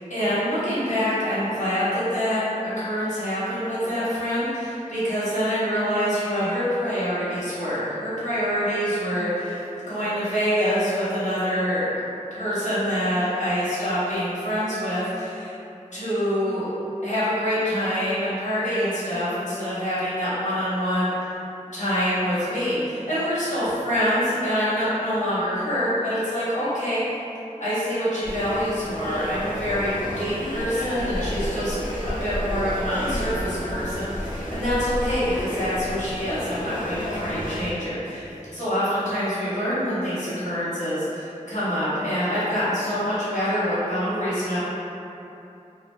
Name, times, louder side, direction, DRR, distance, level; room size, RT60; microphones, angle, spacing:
voice 1, 0.1-9.6 9.9-11.9 12.3-15.5 15.9-16.7 17.0-21.3 21.7-27.0 27.6-31.8 32.0-44.6, equal, 60° left, -12 dB, 1.0 m, -25 dB
sound 1, 28.2-37.7, equal, 85° left, 0.5 m, -31 dB
2.4 x 2.1 x 3.2 m, 2.8 s
wide cardioid pair, 40°, 14 cm